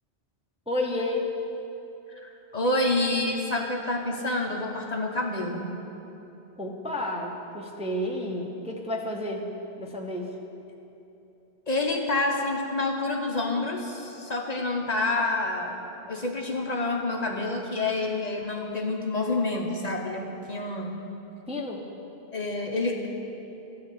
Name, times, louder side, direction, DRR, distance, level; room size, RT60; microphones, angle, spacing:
voice 1, 0.7-1.3 6.6-9.5 9.8-10.3 21.5-21.8, left 1 dB, 5° right, 0 dB, 0.7 m, -31 dB
voice 2, 2.2-5.8 11.7-15.8 16.1-20.9 22.3-23.1, left 2 dB, 40° left, 1 dB, 0.9 m, -28 dB
14.0 x 4.8 x 8.2 m, 2.9 s
omnidirectional pair, 1.1 m